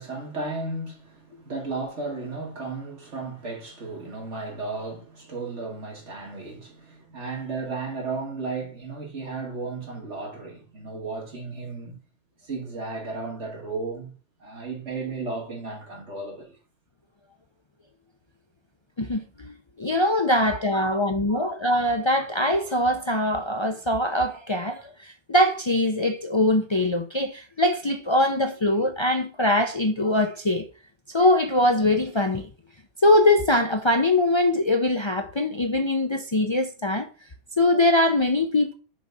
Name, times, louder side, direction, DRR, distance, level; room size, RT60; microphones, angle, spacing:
voice 1, 0.0-12.0 12.4-14.1 14.4-16.5 20.4-21.5, right 3 dB, 80° right, 2.5 m, -34 dB
voice 2, 19.0-30.7 31.1-32.5 33.0-37.1 37.6-38.7, left 1 dB, 35° left, 0.5 m, -22 dB
6.2 x 4.1 x 4.7 m
omnidirectional pair, 1.2 m